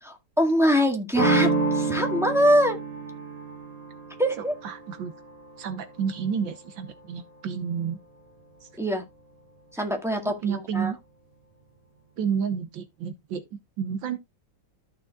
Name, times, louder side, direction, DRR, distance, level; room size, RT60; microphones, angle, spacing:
voice 1, 0.0-2.8 4.2-4.5 8.8-9.0 9.7-10.9, equal, ahead, 1.6 m, -23 dB
sound 1, 1.2-6.7, right 3 dB, 15° right, 3.1 m, -29 dB
voice 2, 4.4-5.1 5.6-8.0 8.6-8.7 9.8-9.9 10.2-11.0 12.2-14.2, right 7 dB, 70° right, 1.6 m, -31 dB
14.0 x 6.3 x 2.3 m
omnidirectional pair, 2.2 m